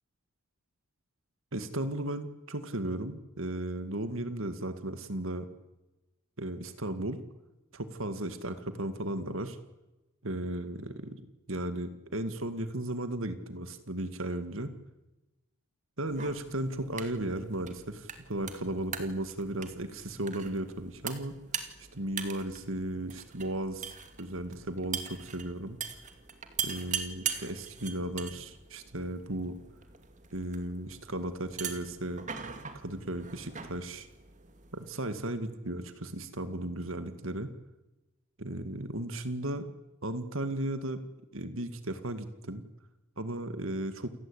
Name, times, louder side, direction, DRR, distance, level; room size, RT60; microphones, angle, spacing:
voice 1, 1.5-5.5 6.4-7.2 7.7-9.6 10.2-11.2 11.5-14.8 16.0-21.4 21.9-25.8 26.6-29.6 30.3-32.3 32.8-34.1 34.7-37.5 38.4-39.7 40.0-41.0 41.3-42.6 43.2-44.1, right 1 dB, 65° right, 10 dB, 2.0 m, -35 dB
sound 1, 16.1-34.9, right 7 dB, 35° right, 2.4 m, -42 dB
29.0 x 18.5 x 8.8 m, 1.0 s
head